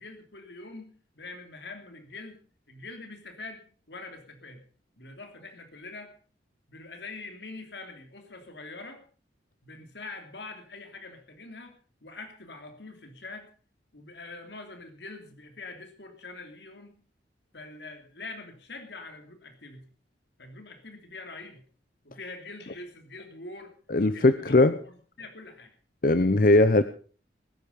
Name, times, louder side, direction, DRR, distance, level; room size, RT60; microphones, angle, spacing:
voice 1, 0.0-2.4 2.7-4.6 5.0-6.2 6.7-9.0 9.6-11.7 12.0-13.5 13.9-16.9 17.5-19.8 20.4-21.6 22.0-23.7 24.1-24.6 24.8-25.7, left 3 dB, 70° left, 6 dB, 2.9 m, -44 dB
voice 2, 23.9-24.7 26.0-26.8, left 2 dB, 50° left, 12 dB, 0.7 m, -19 dB
20.0 x 10.5 x 5.3 m, 0.40 s
head